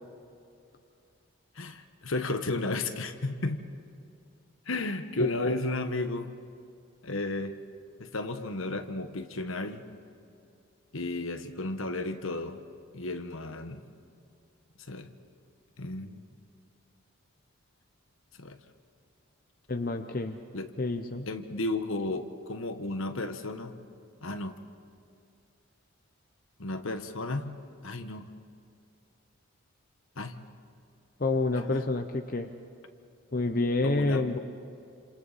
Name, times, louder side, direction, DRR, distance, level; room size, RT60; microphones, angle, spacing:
voice 1, 1.6-3.7 4.7-6.3 7.0-7.6 8.0-9.8 10.9-12.6 12.9-13.8 14.9-15.1 15.8-16.2 18.4-18.6 20.5-20.7 21.3-23.7 24.2-24.6 26.6-27.5 27.8-28.3 30.2-30.4 31.5-31.6 33.8-34.3, left 2 dB, 70° left, 8 dB, 1.3 m, -33 dB
voice 2, 5.2-5.6 19.7-20.4 20.8-21.3 31.2-32.5 33.3-34.4, left 2 dB, 40° left, 6 dB, 0.8 m, -28 dB
30.0 x 27.0 x 4.2 m, 2.5 s
head